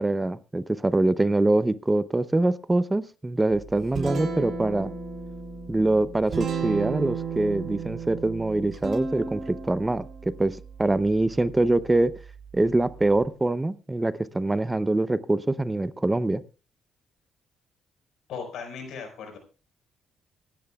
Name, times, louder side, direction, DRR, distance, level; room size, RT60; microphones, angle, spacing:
voice 1, 0.0-4.9 5.7-12.1 12.5-16.4, right 2 dB, 15° right, 15 dB, 0.6 m, -24 dB
Guitar, 3.5-13.3, right 5 dB, 50° right, 6.8 m, -35 dB
voice 2, 18.3-19.4, left 6 dB, 80° left, 5 dB, 5.0 m, -37 dB
26.0 x 10.5 x 2.3 m, 0.32 s
cardioid pair, 90°, 0 cm